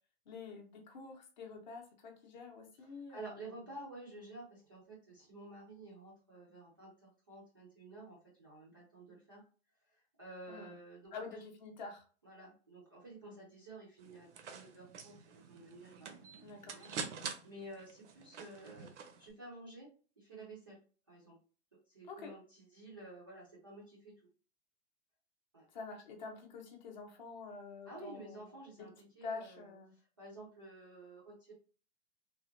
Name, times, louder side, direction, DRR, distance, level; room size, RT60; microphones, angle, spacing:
voice 1, 0.3-3.5 10.5-10.7 11.1-12.1 13.2-13.4 16.4-16.8 17.2-17.4 22.1-22.3 25.7-28.5 29.2-29.9, left 4 dB, 40° left, 3 dB, 0.6 m, -47 dB
voice 2, 2.8-9.4 9.9-11.4 12.2-18.9 19.2-19.9 20.2-20.8 21.1-21.4 21.9-24.3 25.5-25.7 27.8-31.5, right 2 dB, 20° right, -6 dB, 0.3 m, -52 dB
sound 1, 14.0-19.3, right 6 dB, 80° right, 0.7 m, -47 dB
3.4 x 2.1 x 2.5 m, 0.38 s
supercardioid pair, 180°, 35 cm